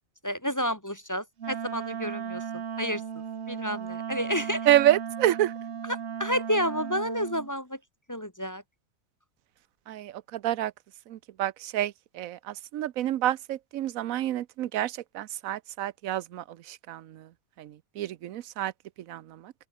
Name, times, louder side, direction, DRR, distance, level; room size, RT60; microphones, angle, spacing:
voice 1, 0.2-4.7 5.8-7.8 8.1-8.6, equal, 15° left, 1.1 m, -31 dB
Wind instrument woodwind instrument, 1.4-7.5, right 8 dB, 55° right, 1.3 m, -36 dB
voice 2, 4.7-5.5 9.9-10.7 11.1-17.3 17.6-18.7 19.1-19.5, right 13 dB, 90° right, 1.1 m, -28 dB
open air
omnidirectional pair, 1.4 m